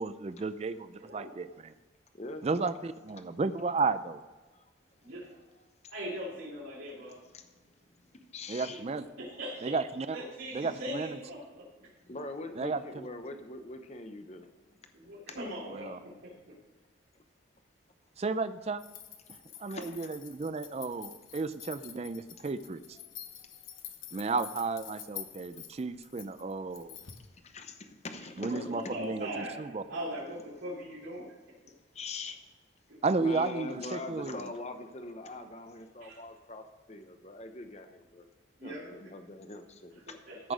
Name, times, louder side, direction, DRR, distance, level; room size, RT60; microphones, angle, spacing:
voice 1, 0.0-1.7 2.4-4.2 8.5-9.1 9.6-10.2 10.5-11.2 12.6-13.1 15.7-16.0 18.2-18.8 19.3-22.8 24.1-27.0 28.4-29.8 33.0-34.4 40.4-40.5, right 4 dB, 30° right, 12 dB, 0.4 m, -33 dB
voice 2, 1.0-1.4 5.0-5.3 5.9-7.2 8.6-9.8 10.1-11.9 14.9-16.4 28.4-29.6 29.9-31.3 32.9-33.0 36.0-36.2 38.6-39.0 40.3-40.5, equal, 85° right, -8 dB, 3.0 m, -40 dB
voice 3, 2.1-2.5 7.3-7.4 8.3-8.8 12.1-14.5 19.7-20.1 27.5-29.0 30.3-30.4 31.9-32.4 33.2-38.3 38.6-40.2, left 2 dB, 35° left, 7 dB, 0.8 m, -42 dB
sound 1, 18.8-27.3, left 10 dB, 80° left, 1.1 m, -48 dB
14.0 x 6.1 x 5.0 m, 1.2 s
head